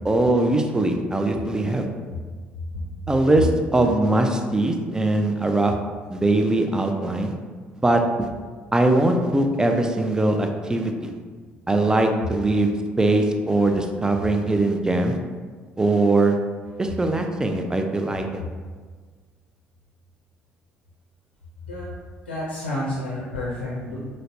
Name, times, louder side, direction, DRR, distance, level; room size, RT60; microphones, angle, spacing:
voice 1, 0.0-1.9 3.1-5.7 6.1-7.4 7.8-8.3 8.7-11.1 11.7-15.2 15.8-16.3 16.8-18.4, right 2 dB, 10° right, 4 dB, 0.3 m, -21 dB
voice 2, 22.3-24.0, left 2 dB, 80° left, -7 dB, 0.5 m, -29 dB
5.0 x 2.0 x 2.6 m, 1.5 s
figure-of-eight pair, 50°, 6 cm